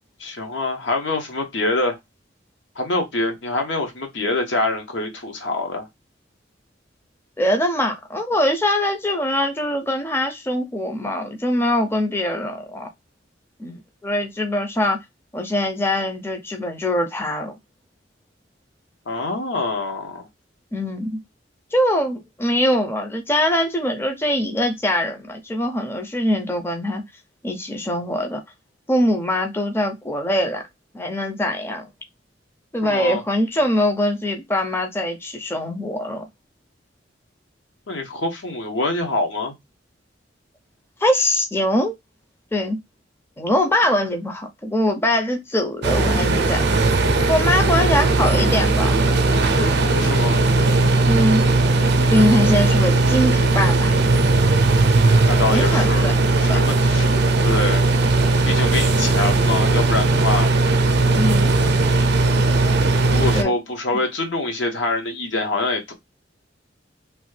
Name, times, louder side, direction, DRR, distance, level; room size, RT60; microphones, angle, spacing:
voice 1, 0.2-2.0 2.8-5.9 19.1-20.3 32.8-33.2 37.9-39.6 48.2-48.6 50.0-50.4 55.3-57.8 58.4-60.5 63.1-65.9, left 2 dB, 75° left, 0.9 m, -25 dB
voice 2, 7.4-12.9 13.6-15.0 15.3-17.5 20.7-21.2 21.7-27.0 27.4-28.4 28.9-30.6 30.9-31.9 32.7-36.2 41.0-41.9 42.5-42.8 43.4-46.8 47.3-49.0 49.6-49.8 51.0-51.5 52.1-54.0 55.5-56.2 56.5-56.6 59.0-59.1 61.1-61.5 63.3-63.5, left 1 dB, 15° left, 0.5 m, -22 dB
sound 1, 45.8-63.4, right 2 dB, 65° right, 0.5 m, -18 dB
3.0 x 2.2 x 3.1 m
head